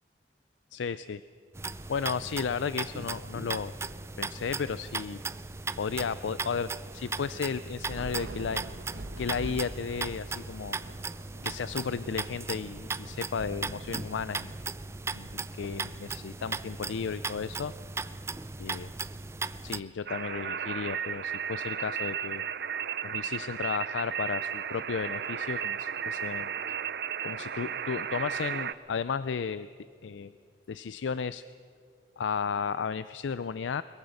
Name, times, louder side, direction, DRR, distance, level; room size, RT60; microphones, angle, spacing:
voice 1, 0.7-1.2 1.9-3.8 4.2-5.2 5.8-8.6 9.2-10.8 11.4-14.5 15.1-17.7 18.0-18.1 18.6-18.9 19.6-22.4 23.0-26.5 27.2-29.7 30.0-30.3 30.7-31.4 32.2-33.8, left 6 dB, 80° left, 15 dB, 0.4 m, -34 dB
sound 1, 1.5-19.8, right 4 dB, 15° right, 0.4 m, -37 dB
Thunder / Rain, 7.8-15.3, right 1 dB, 85° right, 1.1 m, -45 dB
sound 2, 20.1-28.7, right 8 dB, 60° right, 0.6 m, -34 dB
22.0 x 22.0 x 6.5 m, 2.3 s
head